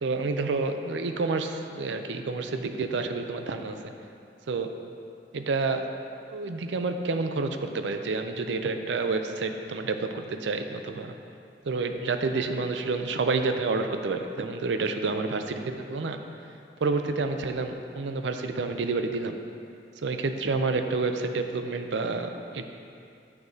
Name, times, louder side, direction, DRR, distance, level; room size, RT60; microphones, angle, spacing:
voice 1, 0.0-3.8 4.5-4.7 5.3-5.9 6.3-11.1 11.7-16.2 16.8-19.4 20.0-22.6, right 3 dB, 90° right, 6 dB, 0.5 m, -29 dB
9.7 x 6.9 x 2.8 m, 2.5 s
head